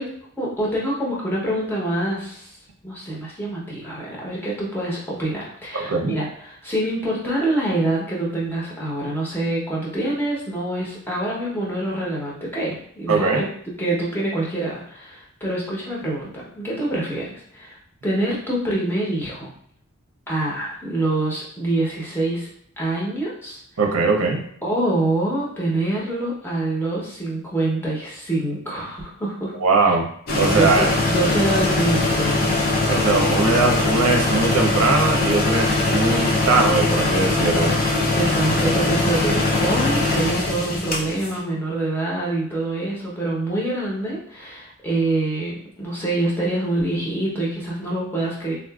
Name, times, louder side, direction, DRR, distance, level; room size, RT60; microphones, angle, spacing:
voice 1, 0.0-2.5 2.8-13.5 13.8-19.5 20.3-22.5 22.8-23.6 24.6-29.5 29.8-29.9 30.5-32.6 38.1-48.5, right 2 dB, 10° left, -5 dB, 0.8 m, -25 dB
voice 2, 5.7-6.1 13.1-13.4 23.8-24.4 29.5-30.1 30.4-30.9 32.9-37.8, right 3 dB, 70° right, 2 dB, 0.6 m, -20 dB
sound 1, 30.3-41.4, left 2 dB, 45° left, 0.5 m, -21 dB
3.6 x 2.4 x 2.3 m, 0.67 s
head